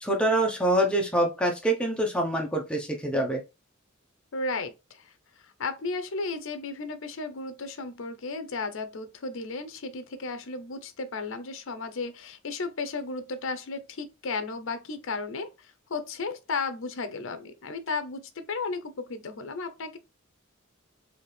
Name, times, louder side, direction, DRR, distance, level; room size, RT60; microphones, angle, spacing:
voice 1, 0.0-3.4, right 1 dB, 5° left, 0.8 m, -25 dB
voice 2, 4.3-20.0, left 3 dB, 65° left, 0.7 m, -34 dB
4.2 x 2.7 x 3.4 m
head